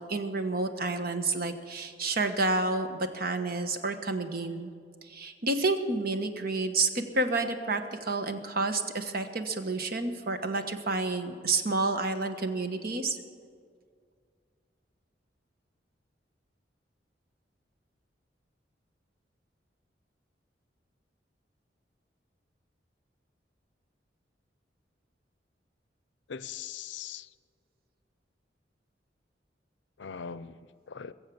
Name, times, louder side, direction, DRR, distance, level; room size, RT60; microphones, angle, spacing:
voice 1, 0.0-4.7 5.0-13.2, right 3 dB, 55° right, 7 dB, 1.1 m, -30 dB
voice 2, 26.3-27.3 30.0-31.1, left 7 dB, 85° left, 16 dB, 0.5 m, -41 dB
21.5 x 7.4 x 7.0 m, 2.1 s
head